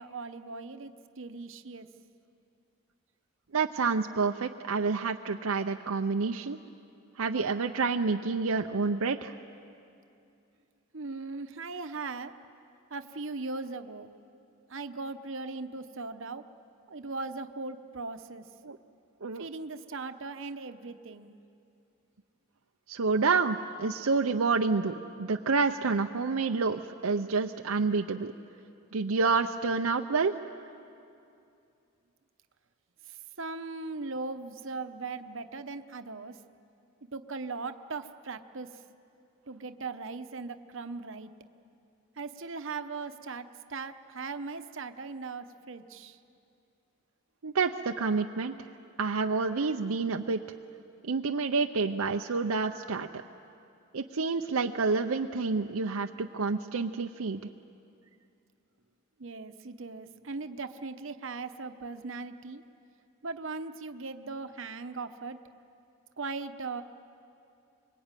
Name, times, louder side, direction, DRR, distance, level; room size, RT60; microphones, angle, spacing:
voice 1, 0.0-1.9 10.9-12.3 12.9-14.1 14.7-16.4 16.9-18.5 19.4-21.4 33.1-36.4 37.1-38.8 39.5-41.3 42.2-46.2 59.2-62.6 63.2-65.4 66.2-66.8, right 3 dB, 60° right, 9 dB, 0.9 m, -39 dB
voice 2, 3.5-6.6 7.2-9.4 18.6-18.8 19.2-19.5 22.9-28.3 28.9-30.3 47.4-48.5 49.0-50.4 51.1-53.2 53.9-57.4, right 4 dB, 75° right, 4 dB, 0.7 m, -28 dB
25.0 x 22.5 x 9.1 m, 2.6 s
head